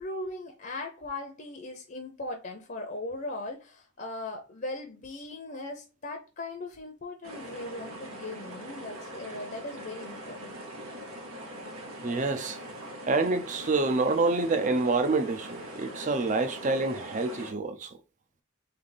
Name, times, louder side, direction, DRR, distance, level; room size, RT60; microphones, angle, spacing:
voice 1, 0.0-10.6, left 2 dB, 40° left, 0.7 m, -39 dB
sound 1, 7.2-17.5, right 1 dB, 85° right, 1.1 m, -42 dB
voice 2, 12.0-12.6 13.1-17.9, right 3 dB, 35° right, 0.5 m, -27 dB
3.4 x 3.3 x 4.0 m
head